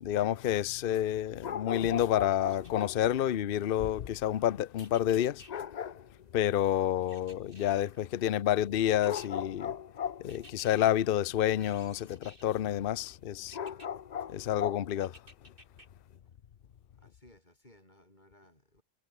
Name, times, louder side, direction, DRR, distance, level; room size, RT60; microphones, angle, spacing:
voice 1, 0.0-5.4 6.3-9.7 10.2-13.6 14.3-15.1, left 11 dB, 50° left, 0.7 m, -29 dB
sound 1, 1.4-3.0 5.5-6.3 9.0-10.6 13.5-14.9, left 8 dB, 85° left, 0.3 m, -37 dB
sound 2, 2.5-3.3 4.8-5.5 7.1-8.0 8.7-9.3 10.3-10.9 11.6-12.6 13.5-13.9 15.0-15.9 16.3-16.4, right 1 dB, 35° right, 8.4 m, -55 dB
voice 2, 16.9-18.8, left 1 dB, 30° left, 7.3 m, -62 dB
omnidirectional pair, 1.6 m